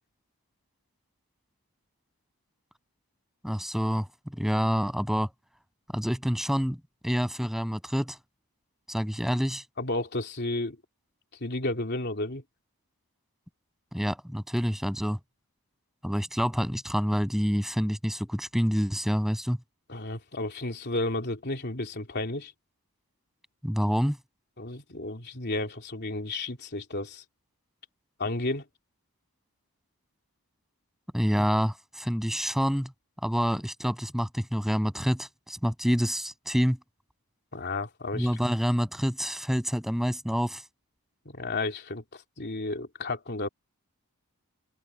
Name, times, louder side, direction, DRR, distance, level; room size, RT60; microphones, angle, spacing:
voice 1, 3.4-5.3 5.9-6.8 7.0-8.2 8.9-9.6 13.9-15.2 16.0-19.6 23.6-24.2 31.1-32.9 33.2-36.8 38.1-40.6, equal, ahead, 8.0 m, -27 dB
voice 2, 9.8-10.8 11.4-12.4 19.9-22.5 24.6-27.2 28.2-28.6 37.5-38.3 41.2-43.5, left 2 dB, 50° left, 3.2 m, -32 dB
head